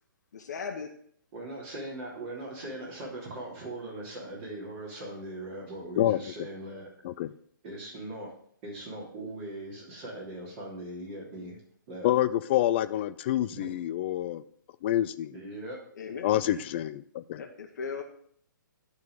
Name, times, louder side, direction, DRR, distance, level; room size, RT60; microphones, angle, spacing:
voice 1, 0.3-0.9 3.1-3.3 15.9-16.3 17.4-18.0, left 5 dB, 55° left, 3 dB, 1.0 m, -38 dB
voice 2, 1.3-6.9 7.6-8.3 8.6-11.6 11.9-12.1 13.5-13.7 15.3-15.8 16.0-16.1, right 1 dB, 35° right, -4 dB, 3.1 m, -40 dB
voice 3, 12.0-14.4 14.8-15.3 16.2-17.4, left 13 dB, 30° left, 14 dB, 0.4 m, -27 dB
12.0 x 4.0 x 4.9 m, 0.63 s
figure-of-eight pair, 130°, 11 cm